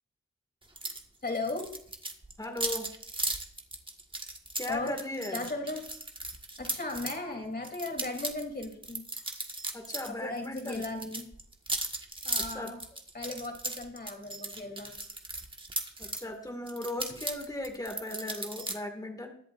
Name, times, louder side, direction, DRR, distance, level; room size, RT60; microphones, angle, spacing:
sound 1, 0.8-1.0 1.3-7.2 7.6-10.1 10.4-16.2 16.7-18.7, right 2 dB, 15° right, 1.6 m, -36 dB
voice 1, 1.2-1.7 4.7-5.0 5.3-5.8 6.6-9.1 10.0-11.3 12.2-12.8 13.1-14.9, left 2 dB, 30° left, 2 dB, 3.3 m, -36 dB
voice 2, 2.4-2.9 4.6-5.5 9.7-10.8 12.4-12.7 16.0-19.3, left 1 dB, 10° left, 3 dB, 2.1 m, -37 dB
22.0 x 7.9 x 2.6 m, 0.65 s
cardioid pair, 65°, 31 cm